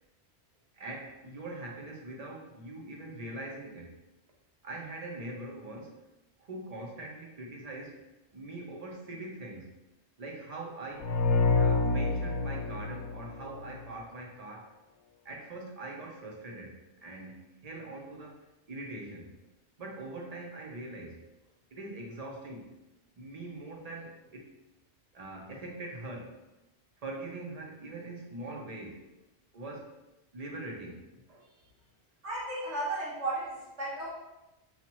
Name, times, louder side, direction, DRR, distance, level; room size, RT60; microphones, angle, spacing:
voice 1, 0.7-3.9 4.6-6.0 6.4-8.0 8.3-9.7 10.2-11.1 11.5-14.7 15.2-18.4 18.7-19.3 19.8-21.2 21.7-22.8 23.1-24.5 25.1-26.4 27.0-29.0 29.5-29.9 30.3-31.4, right 2 dB, 40° right, -1 dB, 0.7 m, -42 dB
sound 1, 11.0-13.8, left 3 dB, 85° left, 0.9 m, -27 dB
voice 2, 32.2-34.1, right 2 dB, 80° right, -5 dB, 1.5 m, -34 dB
5.7 x 2.4 x 3.0 m, 1.0 s
omnidirectional pair, 1.2 m